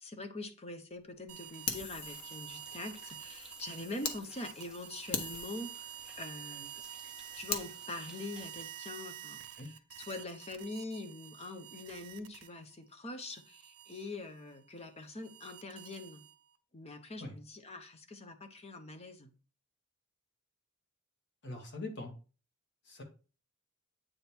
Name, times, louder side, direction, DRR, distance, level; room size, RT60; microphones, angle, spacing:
voice 1, 0.0-6.7 7.3-16.2 16.7-19.3, left 2 dB, 30° left, 7 dB, 0.8 m, -44 dB
sound 1, 1.3-12.8 13.2-16.6, right 12 dB, 75° right, 0.7 m, -49 dB
sound 2, 1.4-9.3, right 2 dB, 5° right, 0.5 m, -55 dB
Fire, 1.7-4.2 4.6-4.7 5.1-7.7, left 5 dB, 80° left, 1.1 m, -41 dB
voice 2, 21.4-22.1 22.9-23.0, left 2 dB, 55° left, 3 dB, 1.6 m, -42 dB
8.6 x 3.5 x 4.4 m, 0.35 s
head